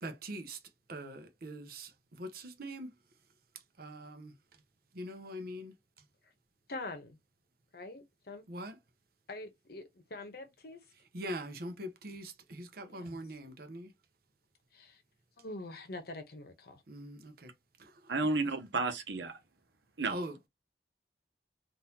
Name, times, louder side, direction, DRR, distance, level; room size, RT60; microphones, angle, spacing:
voice 1, 0.0-0.6 0.9-3.0 3.5-4.3 4.9-6.0 8.5-8.8 11.1-13.9 16.9-18.4 20.1-20.5, right 1 dB, 55° right, 0.8 m, -43 dB
voice 2, 6.7-7.2 7.7-8.4 9.3-10.8 12.8-13.1 14.7-15.0 15.4-16.8, left 2 dB, 60° left, 0.9 m, -44 dB
voice 3, 18.1-19.4 20.0-20.2, right 3 dB, 85° right, 0.9 m, -32 dB
3.8 x 2.6 x 2.8 m
head